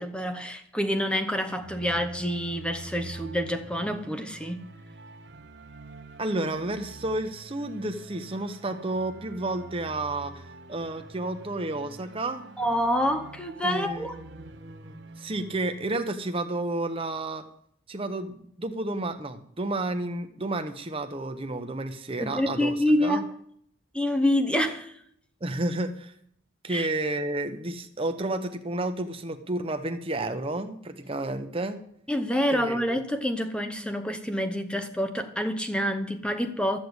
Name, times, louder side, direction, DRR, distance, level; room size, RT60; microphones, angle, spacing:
voice 1, 0.0-4.7 12.6-14.1 22.2-23.3 23.9-24.9 26.7-26.9 32.1-36.8, equal, 5° left, 7 dB, 0.8 m, -27 dB
sound 1, 1.6-16.1, right 2 dB, 55° right, 1.0 m, -46 dB
voice 2, 6.2-10.4 10.7-12.4 13.6-17.4 17.9-22.8 23.0-23.2 25.4-26.1 26.6-31.8 32.5-32.8, right 2 dB, 25° right, 7 dB, 0.9 m, -31 dB
13.0 x 7.1 x 8.0 m, 0.69 s
head